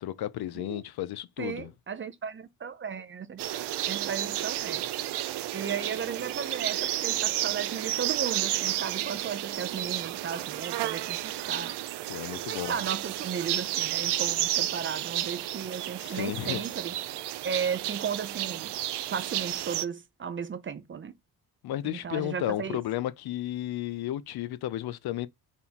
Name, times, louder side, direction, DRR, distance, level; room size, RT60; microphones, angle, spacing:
voice 1, 0.0-1.7 12.1-12.8 16.0-16.6 21.6-25.3, left 13 dB, 75° left, 0.5 m, -33 dB
voice 2, 1.4-3.4 3.9-4.9 5.5-11.8 12.3-17.0 17.4-18.8 19.1-21.1 21.8-22.8, right 7 dB, 30° right, 0.5 m, -35 dB
sound 1, 3.4-19.9, right 14 dB, 85° right, 0.5 m, -32 dB
4.2 x 3.5 x 2.9 m
wide cardioid pair, 150°, 39 cm